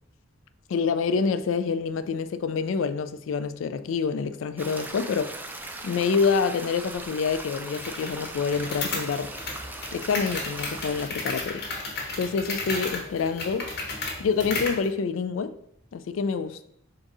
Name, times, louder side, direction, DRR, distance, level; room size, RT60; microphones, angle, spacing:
voice 1, 0.7-5.4 5.8-9.3 9.9-11.6 12.2-13.7 14.2-15.5 15.9-16.6, left 5 dB, 70° left, 0.3 m, -27 dB
sound 1, 4.6-11.1, right 2 dB, 10° right, 0.3 m, -39 dB
sound 2, 7.7-14.8, left 3 dB, 55° left, 1.1 m, -34 dB
3.8 x 2.7 x 4.7 m
head